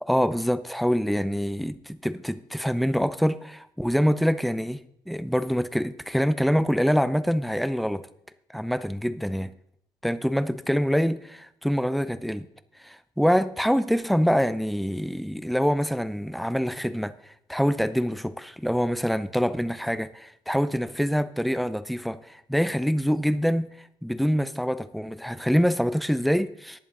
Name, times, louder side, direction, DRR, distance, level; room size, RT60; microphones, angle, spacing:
voice 1, 0.0-8.1 8.5-9.5 10.0-12.5 12.8-17.1 17.5-23.7 24.0-26.8, equal, ahead, 13 dB, 0.5 m, -25 dB
18.5 x 7.1 x 3.8 m, 0.72 s
cardioid pair, 175°, 9 cm